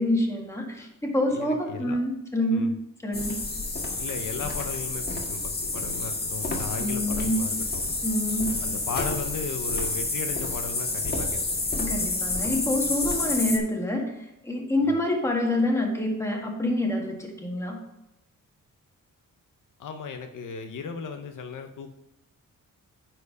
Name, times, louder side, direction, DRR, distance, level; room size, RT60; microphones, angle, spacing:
voice 1, 0.0-2.7 3.0-3.3 6.8-7.4 8.0-8.5 11.8-14.1 14.4-17.8, left 1 dB, 10° left, 0 dB, 1.9 m, -26 dB
voice 2, 1.3-2.0 2.5-2.8 4.0-7.9 8.6-11.6 14.8-15.0 19.8-21.9, left 5 dB, 65° left, 6 dB, 0.8 m, -36 dB
sound 1, 3.1-13.6, left 2 dB, 30° left, 1.7 m, -29 dB
9.7 x 4.6 x 5.4 m, 0.87 s
cardioid pair, 120°, 33 cm